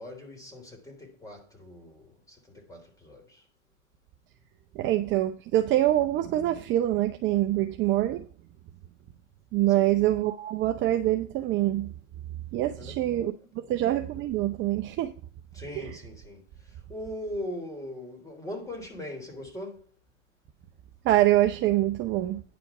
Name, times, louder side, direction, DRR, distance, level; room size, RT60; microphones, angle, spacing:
voice 1, 0.0-3.4 9.7-10.0 12.8-13.8 15.5-19.9, left 1 dB, 10° left, 3.5 m, -41 dB
voice 2, 4.7-8.2 9.5-11.9 12.5-13.3 13.7-15.1 21.0-22.4, right 14 dB, 30° right, 0.7 m, -25 dB
9.9 x 5.2 x 5.9 m
hypercardioid pair, 125°, 37 cm